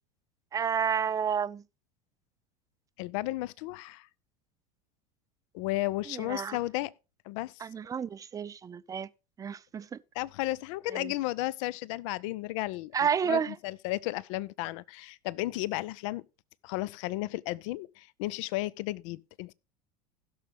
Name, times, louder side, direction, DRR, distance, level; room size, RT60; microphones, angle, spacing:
voice 1, 0.5-1.6 6.1-6.6 7.6-9.1 9.4-10.0 10.9-11.1 12.9-13.5, right 7 dB, 20° right, 0.4 m, -30 dB
voice 2, 3.0-4.1 5.5-6.9 7.3-7.7 10.1-12.9 13.2-16.2 16.6-19.5, left 18 dB, 55° left, 0.4 m, -34 dB
16.0 x 6.3 x 3.4 m
figure-of-eight pair, 75°, 19 cm